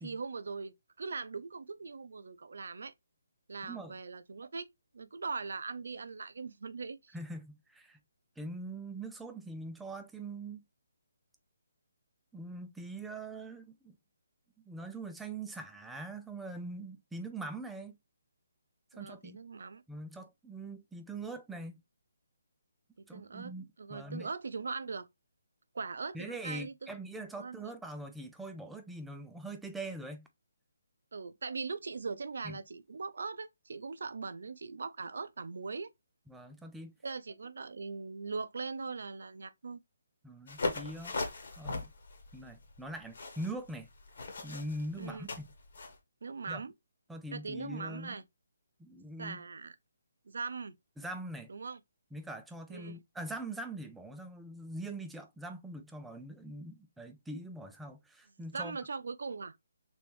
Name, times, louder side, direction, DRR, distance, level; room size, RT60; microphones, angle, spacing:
voice 1, 0.0-2.9 3.5-4.7 4.9-7.2 18.9-19.8 23.0-23.5 23.8-25.1 25.7-26.9 27.4-27.6 31.1-35.9 37.0-39.8 45.0-45.3 46.2-46.7 47.3-48.2 49.2-49.8 50.3-50.7 51.5-51.8 52.7-53.0 58.5-59.6, right 4 dB, 70° right, 0.5 m, -40 dB
voice 2, 3.6-4.0 7.1-8.0 8.4-10.6 12.3-14.0 14.7-18.0 18.9-19.4 19.9-21.8 23.1-24.3 26.1-30.3 32.4-32.6 36.3-37.0 40.2-41.2 41.6-41.9 42.3-43.9 44.4-45.5 46.5-46.6 47.1-48.2 48.8-49.4 51.0-51.5 52.1-58.8, right 2 dB, 5° right, 0.4 m, -43 dB
sound 1, 40.5-46.0, left 3 dB, 60° left, 1.2 m, -39 dB
3.1 x 3.0 x 3.1 m
hypercardioid pair, 165°, 0 cm